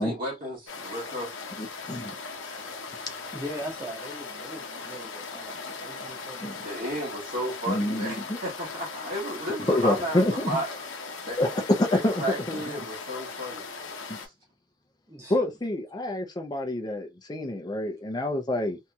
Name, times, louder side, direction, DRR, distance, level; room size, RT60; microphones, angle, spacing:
voice 1, 0.0-1.3 6.6-10.7 11.3-11.4 11.9-14.3, equal, 50° right, 1.1 m, -33 dB
sound 1, 0.7-14.3, left 4 dB, 75° left, 0.7 m, -39 dB
voice 2, 1.6-2.1 6.4-6.6 7.7-8.4 9.7-10.6 11.4-12.8 14.1-14.2 15.3-18.8, left 1 dB, 20° left, 0.6 m, -27 dB
voice 3, 3.3-6.9 10.1-10.2 15.1-15.4, equal, 15° right, 0.9 m, -41 dB
2.8 x 2.7 x 2.3 m
head